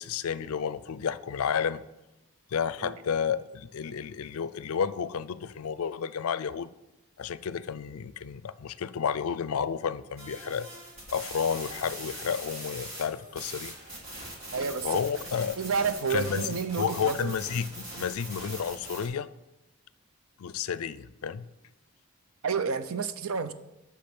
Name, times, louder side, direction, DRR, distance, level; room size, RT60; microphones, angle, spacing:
voice 1, 0.0-1.8 2.5-6.7 7.2-10.7 11.1-13.7 14.8-15.6 16.1-19.3 20.4-21.5, left 7 dB, 80° left, 0.4 m, -31 dB
sound 1, 10.2-19.1, right 1 dB, 30° right, 3.3 m, -41 dB
voice 2, 14.5-14.9 15.6-17.3 22.4-23.5, right 5 dB, 75° right, 0.6 m, -30 dB
8.5 x 6.1 x 6.1 m
head